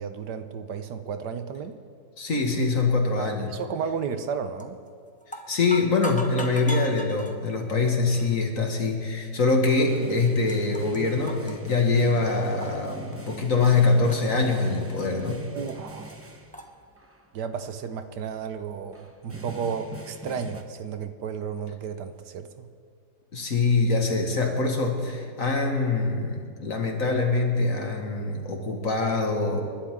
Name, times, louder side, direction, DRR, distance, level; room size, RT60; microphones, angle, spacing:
voice 1, 0.0-1.7 3.2-4.8 15.5-16.2 17.3-22.7, right 6 dB, 75° right, 9 dB, 1.5 m, -33 dB
voice 2, 2.2-3.5 5.5-15.4 23.3-29.6, left 3 dB, 50° left, 2 dB, 2.1 m, -24 dB
sound 1, 4.6-4.9 5.2-7.4 8.1-8.3 9.0-9.1 10.0-10.1 10.2-11.0 11.3-12.9 13.1-13.7 14.1-15.3 15.7-15.8 16.1-16.2 16.5-16.7, equal, 5° left, 0.9 m, -39 dB
sound 2, 9.9-16.7 17.0-17.3 18.1-18.2 18.6-18.7 18.9-20.6, right 1 dB, 15° right, 0.6 m, -43 dB
29.0 x 12.0 x 3.7 m, 2.2 s
omnidirectional pair, 1.8 m